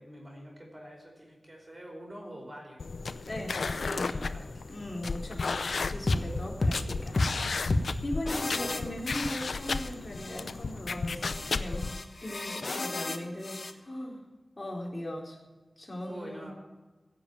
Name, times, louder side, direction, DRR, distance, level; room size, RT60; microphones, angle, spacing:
voice 1, 0.0-2.8 3.8-4.8 11.1-11.6 16.1-16.5, equal, 35° right, 0 dB, 5.2 m, -46 dB
sound 1, 2.8-12.0, left 4 dB, 85° left, 0.6 m, -34 dB
voice 2, 3.3-4.1 4.7-11.9 12.2-14.3 14.6-15.4 15.8-16.5, left 1 dB, 25° left, -1 dB, 4.1 m, -38 dB
sound 2, 6.1-6.3 6.6-6.8 7.2-7.3 7.7-7.9 8.3-9.9 10.1-10.4 11.2-13.7, left 2 dB, 55° left, 1.3 m, -32 dB
16.5 x 7.5 x 8.8 m, 1.2 s
wide cardioid pair, 65°, 0 cm